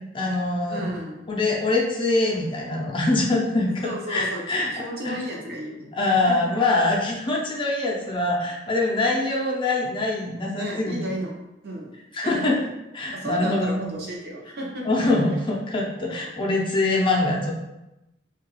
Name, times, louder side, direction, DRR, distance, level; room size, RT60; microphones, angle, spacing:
voice 1, 0.1-0.8 1.3-3.7 4.1-4.7 5.0-5.2 5.9-11.0 12.1-12.6 12.9-13.8 14.9-17.5, left 2 dB, 25° left, -2 dB, 0.5 m, -23 dB
voice 2, 0.7-1.5 3.7-6.6 10.6-12.6 13.1-14.9, right 1 dB, 55° right, -1 dB, 0.6 m, -34 dB
2.7 x 2.3 x 3.0 m, 0.93 s
head